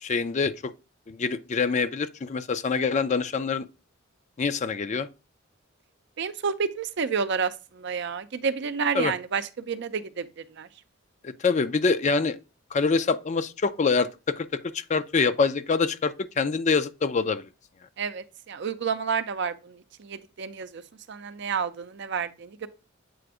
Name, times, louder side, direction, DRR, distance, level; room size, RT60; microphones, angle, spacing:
voice 1, 0.0-0.7 1.1-3.7 4.4-5.1 8.9-9.1 11.2-12.4 12.7-17.5, left 4 dB, 35° left, 0.4 m, -25 dB
voice 2, 6.2-10.7 18.0-20.8 21.1-22.7, right 6 dB, 60° right, 0.5 m, -30 dB
7.7 x 2.6 x 4.7 m
head